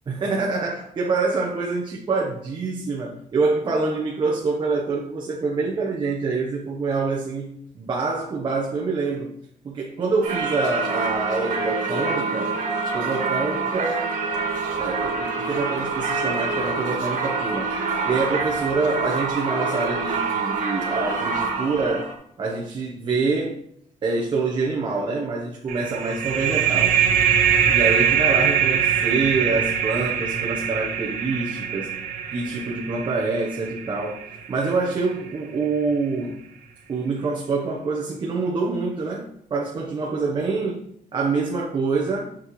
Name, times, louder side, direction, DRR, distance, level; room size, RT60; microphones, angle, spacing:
voice 1, 0.1-9.3 9.6-12.5 12.9-14.2 14.8-17.8 18.0-22.1 22.4-23.6 24.0-27.0 27.7-31.9 32.3-36.4 36.9-40.8 41.1-42.3, right 3 dB, 35° right, -2 dB, 1.0 m, -26 dB
Singing / Church bell, 10.2-22.1, right 4 dB, 65° right, 1.9 m, -26 dB
sound 1, 25.7-35.0, right 8 dB, 90° right, 1.2 m, -23 dB
7.4 x 6.4 x 3.2 m, 0.70 s
cardioid pair, 160°, 14 cm